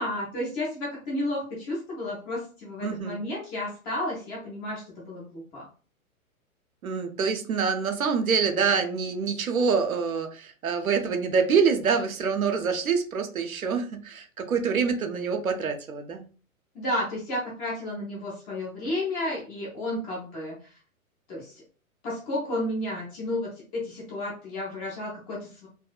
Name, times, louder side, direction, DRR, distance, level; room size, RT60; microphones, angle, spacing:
voice 1, 0.0-5.7 16.7-20.7 21.3-21.6 22.0-25.7, left 1 dB, 10° left, -5 dB, 0.4 m, -32 dB
voice 2, 2.8-3.2 6.8-16.2, right 5 dB, 70° right, 6 dB, 0.7 m, -26 dB
4.1 x 2.3 x 2.3 m, 0.38 s
figure-of-eight pair, 110°, 43 cm